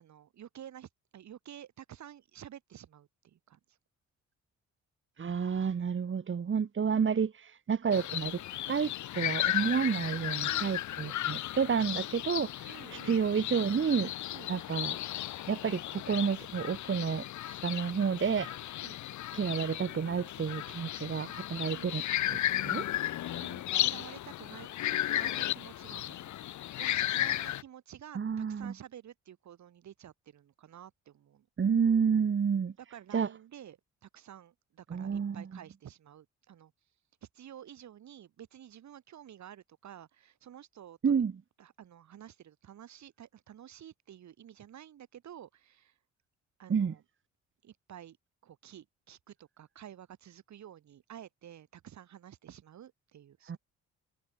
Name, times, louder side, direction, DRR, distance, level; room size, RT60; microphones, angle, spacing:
voice 1, 0.0-3.8 10.4-10.8 12.7-13.2 14.3-14.6 18.8-19.0 21.6-22.0 23.2-26.5 26.8-31.5 32.8-36.7 37.3-41.2 41.6-45.9 46.6-47.0 47.6-48.2 48.4-53.6, right 10 dB, 65° right, 7.7 m, -51 dB
voice 2, 5.2-8.4 8.7-14.1 14.5-15.0 15.5-18.5 19.3-22.0 22.3-22.9 28.1-28.7 31.6-32.7 33.1-33.3 34.9-35.5 41.0-41.3 46.7-46.9 53.5-53.6, right 6 dB, 40° right, 3.0 m, -30 dB
sound 1, 7.9-27.6, left 13 dB, 75° left, 1.3 m, -35 dB
cardioid pair, 90°, 30 cm